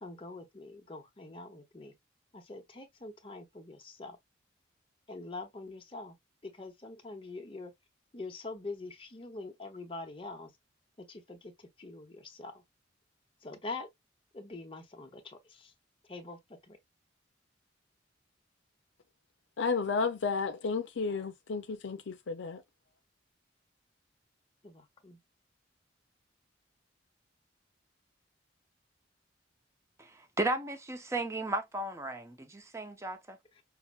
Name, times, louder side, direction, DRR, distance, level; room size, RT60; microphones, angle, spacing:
voice 1, 0.0-1.9 2.3-4.2 5.1-6.1 6.4-7.7 8.1-10.5 11.0-12.5 13.4-13.9 14.3-15.7 16.1-16.4 16.7-16.8 24.6-25.2 33.6-33.7, left 3 dB, 30° left, 0.8 m, -44 dB
voice 2, 19.6-22.6, left 4 dB, 75° left, 0.5 m, -32 dB
voice 3, 30.0-33.4, right 2 dB, 15° right, 0.5 m, -35 dB
5.7 x 2.0 x 2.3 m
head